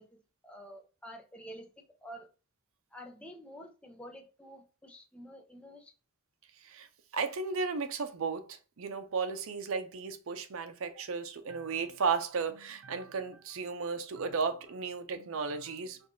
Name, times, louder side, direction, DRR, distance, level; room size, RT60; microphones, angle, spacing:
voice 1, 0.0-2.3 2.9-5.9, equal, 5° left, 0.6 m, -49 dB
voice 2, 7.1-16.0, right 5 dB, 70° right, 0.5 m, -34 dB
4.4 x 2.4 x 2.6 m
head